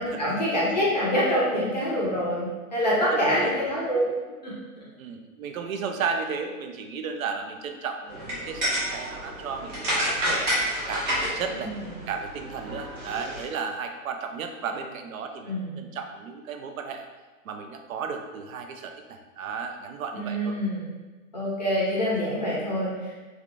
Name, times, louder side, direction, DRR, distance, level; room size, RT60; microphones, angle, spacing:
voice 1, 0.0-4.1 4.4-4.9 11.6-11.7 15.4-15.7 20.1-20.9 21.3-23.1, equal, 30° left, -6 dB, 0.5 m, -26 dB
voice 2, 3.1-3.6 5.0-10.5 10.9-11.7 12.1-17.1 17.4-20.6, right 5 dB, 70° right, 5 dB, 0.5 m, -34 dB
sound 1, 8.1-13.4, equal, 35° right, 1.0 m, -30 dB
3.3 x 2.4 x 2.4 m, 1.3 s
hypercardioid pair, 165°, 43 cm